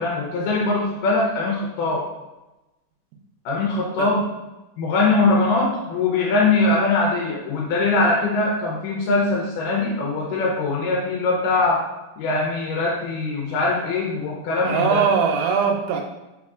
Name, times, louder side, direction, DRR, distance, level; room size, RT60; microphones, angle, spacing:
voice 1, 0.0-2.0 3.5-4.2 4.8-11.8 12.2-15.0, left 3 dB, 90° left, -2 dB, 2.3 m, -22 dB
voice 2, 14.6-16.0, right 6 dB, 85° right, 3 dB, 2.1 m, -20 dB
4.6 x 3.6 x 2.4 m, 1.0 s
omnidirectional pair, 3.8 m